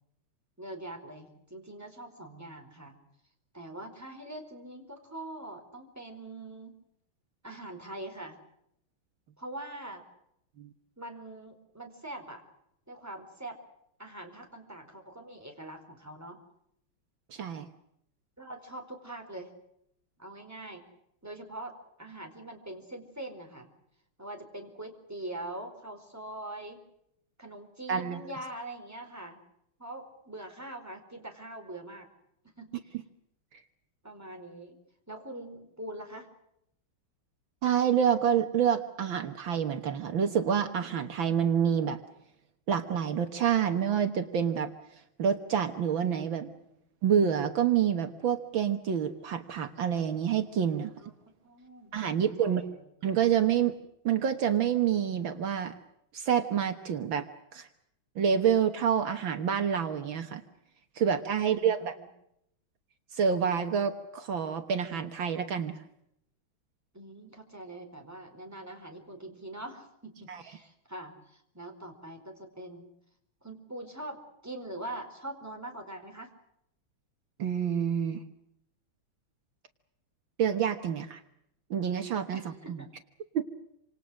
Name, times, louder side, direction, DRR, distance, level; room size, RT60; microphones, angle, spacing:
voice 1, 0.6-3.0 3.5-6.8 7.4-8.4 9.4-10.0 11.0-12.4 12.9-13.6 14.0-16.4 18.4-19.5 20.2-20.8 21.2-23.7 24.2-26.8 27.4-29.4 29.8-32.1 32.6-32.9 34.0-34.8 35.1-36.3 46.5-46.7 51.0-51.1 51.4-52.0 52.4-52.9 61.4-62.1 66.9-72.9 73.4-76.3 82.3-82.9, right 1 dB, 5° right, 3 dB, 4.6 m, -43 dB
voice 2, 17.3-17.7 27.9-28.2 37.6-42.0 42.7-44.7 45.2-46.5 47.0-50.9 51.9-52.6 53.0-53.8 54.0-55.7 56.1-57.3 57.5-57.7 58.2-60.4 61.0-62.0 63.1-65.7 70.3-70.4 77.4-78.2 80.4-81.2 81.7-82.8 83.3-83.4, right 8 dB, 70° right, 7 dB, 2.1 m, -27 dB
28.0 x 27.0 x 6.4 m, 0.77 s
omnidirectional pair, 2.3 m